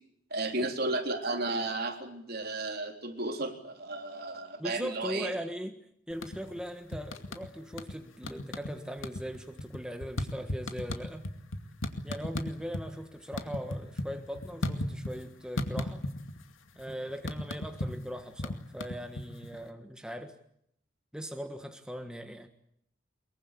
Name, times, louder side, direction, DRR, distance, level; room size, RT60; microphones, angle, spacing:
voice 1, 0.3-5.3, right 2 dB, 50° right, 3.9 m, -33 dB
voice 2, 4.6-5.7 6.1-11.2 12.0-16.0 16.7-20.3 21.1-22.5, equal, 5° right, 1.4 m, -40 dB
sound 1, 6.1-6.6 6.9-8.0 8.2-8.7 9.0-12.9 13.2-15.2 15.6-16.4 16.7-19.6, left 1 dB, 90° left, 2.4 m, -35 dB
23.5 x 23.0 x 8.5 m
head